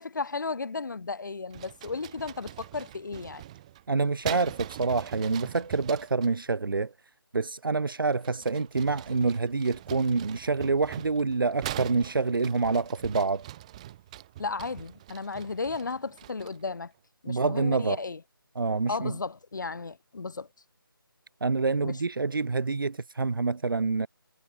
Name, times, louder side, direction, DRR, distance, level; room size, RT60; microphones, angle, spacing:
voice 1, 0.0-3.4 14.4-16.9 17.2-18.2 18.9-20.5 21.8-22.0, left 4 dB, 55° left, 7.2 m, -34 dB
sound 1, 1.5-6.3 8.1-16.7, right 13 dB, 15° right, 3.1 m, -43 dB
voice 2, 3.9-6.9 7.3-13.4 17.3-18.0 18.5-19.1 21.4-24.1, right 4 dB, 65° right, 1.2 m, -27 dB
figure-of-eight pair, 170°, 12 cm